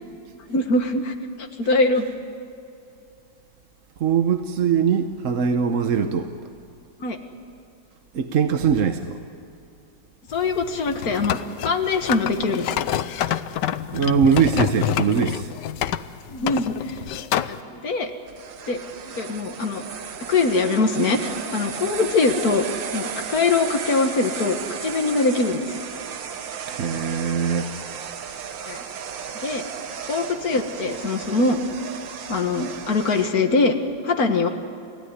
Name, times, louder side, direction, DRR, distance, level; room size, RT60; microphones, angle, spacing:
voice 1, 0.5-2.1 7.0-7.2 10.3-12.7 16.3-17.0 17.5-18.1 18.7-18.8 19.2-19.8 20.3-22.6 22.9-25.8 28.7-28.8 29.4-29.6 30.1-31.6 32.3-33.8 34.0-34.5, left 3 dB, 50° left, 5 dB, 2.1 m, -23 dB
voice 2, 4.0-6.3 8.1-9.2 13.9-15.5 26.7-27.7, right 7 dB, 50° right, 7 dB, 1.1 m, -21 dB
sound 1, 10.3-17.6, left 11 dB, 70° left, 1.3 m, -27 dB
sound 2, 18.3-33.3, right 7 dB, 75° right, 2.0 m, -34 dB
29.0 x 16.0 x 9.9 m, 2.6 s
omnidirectional pair, 2.1 m